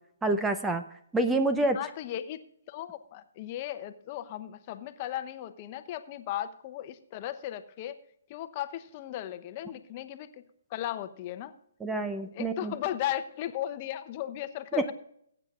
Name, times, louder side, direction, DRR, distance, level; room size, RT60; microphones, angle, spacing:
voice 1, 0.2-0.8 1.1-1.8 11.8-12.7 14.8-14.9, right 2 dB, 10° right, 9 dB, 0.7 m, -27 dB
voice 2, 1.7-2.4 2.7-8.0 8.3-10.4 10.7-11.5 12.3-14.9, left 12 dB, 35° left, 10 dB, 0.9 m, -36 dB
21.5 x 8.8 x 2.4 m, 0.70 s
figure-of-eight pair, 135°, 0 cm